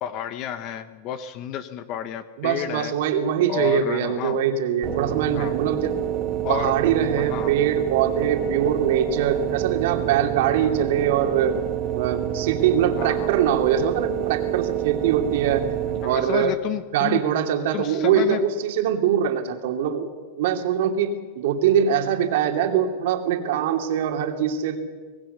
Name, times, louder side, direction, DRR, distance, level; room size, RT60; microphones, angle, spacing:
voice 1, 0.0-2.9 3.5-4.4 5.3-5.5 6.4-6.7 7.2-7.5 13.0-13.3 15.9-17.2 17.7-18.4, left 10 dB, 40° left, 11 dB, 1.1 m, -30 dB
voice 2, 2.4-5.9 6.5-11.6 11.9-15.7 16.0-16.6 16.9-24.8, right 8 dB, 65° right, 5 dB, 2.7 m, -23 dB
sound 1, 4.8-16.5, right 12 dB, 30° right, 1.9 m, -28 dB
24.5 x 19.0 x 6.7 m, 1.5 s
supercardioid pair, 145°, 0 cm